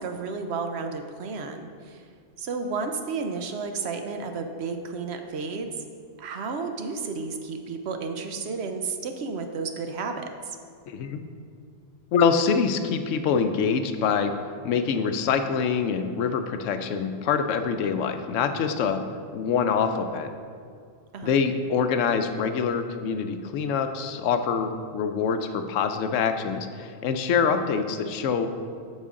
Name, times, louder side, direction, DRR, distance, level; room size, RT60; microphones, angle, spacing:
voice 1, 0.0-2.0 2.4-5.7 6.2-10.6 21.1-21.3, right 4 dB, 65° right, 6 dB, 0.9 m, -32 dB
voice 2, 10.9-11.2 12.1-14.3 14.6-19.0 19.3-20.3 21.2-28.5, left 6 dB, 85° left, 8 dB, 0.9 m, -25 dB
8.2 x 6.4 x 3.7 m, 2.2 s
omnidirectional pair, 1.3 m